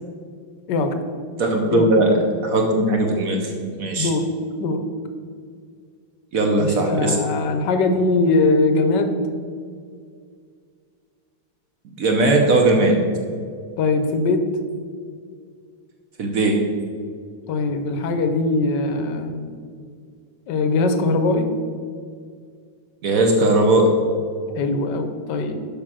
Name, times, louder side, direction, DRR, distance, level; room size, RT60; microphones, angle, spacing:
voice 1, 1.4-2.2 2.4-3.5 3.8-4.1 6.3-7.2 12.0-13.0 16.2-16.5 23.0-23.9, right 2 dB, 65° right, 2 dB, 0.8 m, -18 dB
voice 2, 4.0-4.3 4.6-4.8 6.6-9.2 13.8-14.4 17.5-19.5 20.5-21.5 24.6-25.6, left 3 dB, 65° left, 8 dB, 1.1 m, -21 dB
6.8 x 5.4 x 6.0 m, 2.2 s
omnidirectional pair, 2.3 m